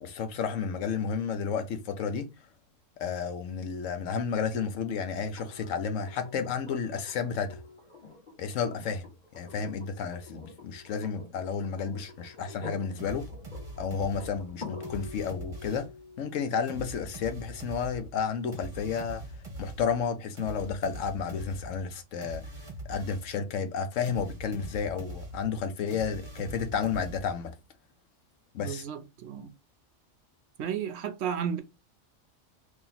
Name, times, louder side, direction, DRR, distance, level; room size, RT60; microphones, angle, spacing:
voice 1, 0.0-2.3 3.0-7.6 8.4-9.1 9.3-13.3 13.8-15.9 16.2-19.3 19.6-22.4 22.8-27.5 28.5-28.8, left 6 dB, 85° left, 1.1 m, -32 dB
sound 1, 5.4-19.3 21.0-21.1, left 3 dB, 40° left, 1.7 m, -48 dB
sound 2, 13.0-16.0 16.7-23.4 24.1-27.6, right 1 dB, 30° right, 1.1 m, -43 dB
voice 2, 28.6-29.5 30.6-31.6, right 8 dB, 65° right, 0.8 m, -33 dB
2.9 x 2.8 x 3.9 m
omnidirectional pair, 1.3 m